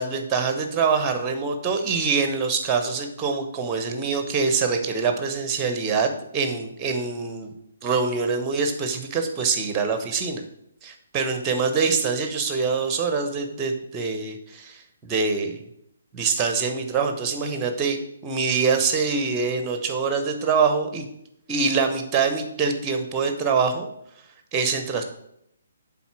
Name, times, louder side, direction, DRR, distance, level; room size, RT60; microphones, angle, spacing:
voice 1, 0.0-7.5 7.8-10.4 10.8-15.6 16.1-21.0 21.5-23.9 24.5-25.0, right 5 dB, 20° right, 6 dB, 1.0 m, -24 dB
8.4 x 3.8 x 5.9 m, 0.75 s
figure-of-eight pair, 135°, 0 cm